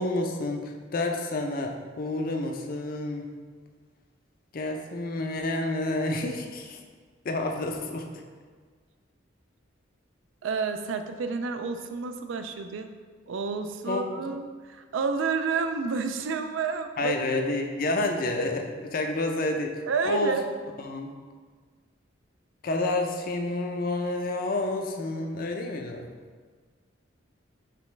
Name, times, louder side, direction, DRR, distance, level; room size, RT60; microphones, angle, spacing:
voice 1, 0.0-3.3 4.5-6.8 7.2-8.2 13.9-14.2 17.0-20.4 20.8-21.1 22.6-26.1, left 2 dB, 45° left, 3 dB, 0.5 m, -29 dB
voice 2, 10.4-12.9 13.3-17.1 19.9-20.4, right 5 dB, 75° right, 8 dB, 0.4 m, -30 dB
5.1 x 3.2 x 3.2 m, 1.5 s
head